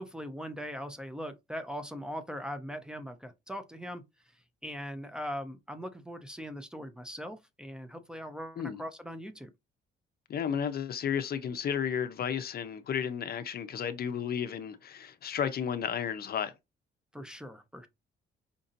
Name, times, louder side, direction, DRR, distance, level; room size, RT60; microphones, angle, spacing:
voice 1, 0.0-4.0 4.3-9.5 17.1-17.9, equal, 5° right, 0.6 m, -40 dB
voice 2, 10.3-16.5, left 8 dB, 50° left, 0.6 m, -33 dB
5.1 x 2.6 x 2.6 m
cardioid pair, 90°, 20 cm